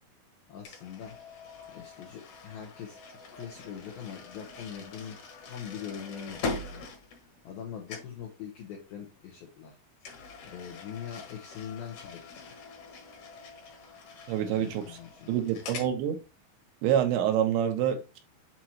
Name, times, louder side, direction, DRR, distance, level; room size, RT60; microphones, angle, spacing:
voice 1, 0.5-1.2 1.7-5.2 5.4-6.9 7.4-9.7 10.4-12.6 14.5-15.4, left 8 dB, 80° left, 2.1 m, -42 dB
sound 1, 0.6-7.6 7.9-8.2 10.0-15.9, left 4 dB, 60° left, 2.3 m, -43 dB
voice 2, 14.3-14.8 15.3-16.2 16.8-18.2, right 10 dB, 75° right, 3.0 m, -27 dB
7.8 x 2.9 x 4.3 m
omnidirectional pair, 5.6 m